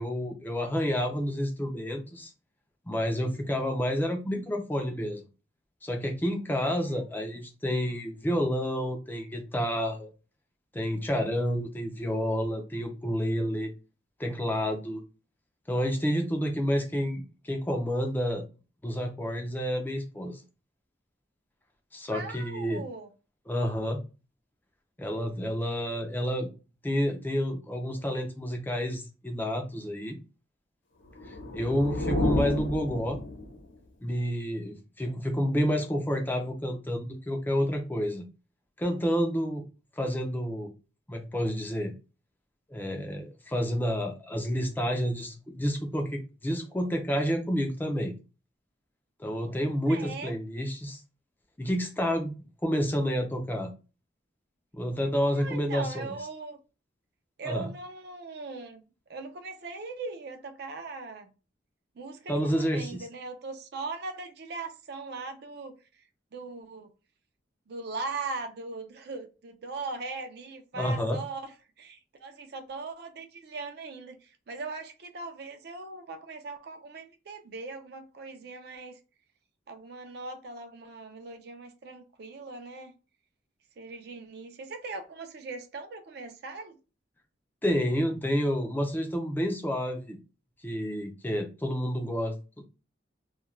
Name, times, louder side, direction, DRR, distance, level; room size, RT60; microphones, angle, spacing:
voice 1, 0.0-2.3 2.9-5.2 5.8-10.1 10.7-13.7 14.2-15.0 15.7-18.4 18.8-20.4 21.9-22.8 23.5-24.0 25.0-26.5 26.8-30.2 31.2-33.2 34.0-38.3 38.8-39.6 40.0-40.7 41.1-41.9 42.7-48.1 49.2-51.0 51.6-52.3 52.6-53.7 54.7-56.1 57.4-57.7 62.3-63.0 70.8-71.2 87.6-90.2 90.6-92.4, equal, 10° left, 0.3 m, -29 dB
voice 2, 22.1-23.1 49.9-50.3 55.4-56.6 57.4-58.8 59.1-61.3 62.0-65.8 66.3-66.9 67.7-79.0 79.7-82.9 83.8-86.8, right 3 dB, 55° right, 0.4 m, -39 dB
sound 1, 31.1-33.7, left 1 dB, 90° left, 0.8 m, -31 dB
2.3 x 2.2 x 3.0 m
head